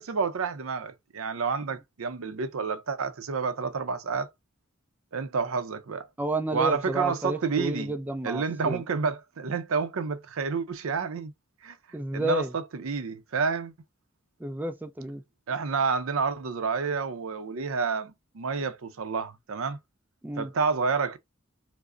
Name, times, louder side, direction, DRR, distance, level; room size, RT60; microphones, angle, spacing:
voice 1, 0.0-4.3 5.1-6.1 6.5-7.9 8.2-11.3 11.6-11.8 12.1-13.7 15.5-19.8 20.4-21.2, right 5 dB, 80° right, 0.5 m, -29 dB
voice 2, 6.2-8.8 11.9-12.5 14.4-15.2 20.2-20.5, right 1 dB, 10° right, 0.3 m, -31 dB
4.8 x 2.0 x 2.4 m
head